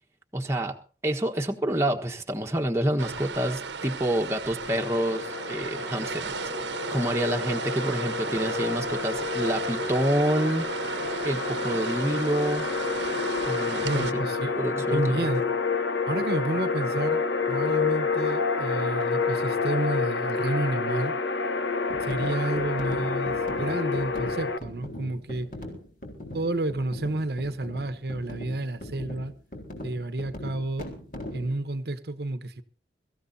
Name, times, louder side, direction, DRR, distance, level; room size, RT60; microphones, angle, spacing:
voice 1, 0.3-0.7 1.0-6.3 6.9-10.6 11.2-12.7 13.5-14.2 14.6-15.1, right 1 dB, 15° right, 1.3 m, -27 dB
sound 1, 3.0-14.1, right 5 dB, 85° right, 1.2 m, -34 dB
sound 2, 4.6-24.6, left 4 dB, 85° left, 1.1 m, -29 dB
voice 2, 13.8-14.6 14.9-15.5 16.1-21.1 22.0-25.5 26.3-29.3 29.8-30.9 31.3-32.6, right 2 dB, 60° right, 1.1 m, -30 dB
sound 3, 21.9-31.6, left 1 dB, 50° left, 4.0 m, -40 dB
24.0 x 14.5 x 2.8 m
head